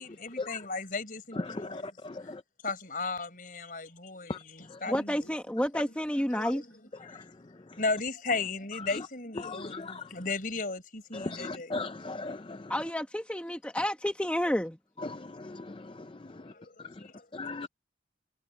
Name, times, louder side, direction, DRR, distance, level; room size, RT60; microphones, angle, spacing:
voice 1, 0.0-2.0 2.2-2.3 2.6-5.4 5.6-5.7 6.3-6.6 7.8-11.9 16.4-17.6, left 3 dB, 50° left, 4.6 m, -36 dB
voice 2, 1.4-2.4 4.3-4.4 4.7-4.8 7.0-7.2 8.9-9.0 9.4-10.1 11.1-12.7 15.0-16.5 16.8-16.9 17.3-17.7, left 3 dB, 30° left, 0.5 m, -38 dB
voice 3, 4.9-6.6 12.7-14.8, equal, 5° left, 1.3 m, -30 dB
head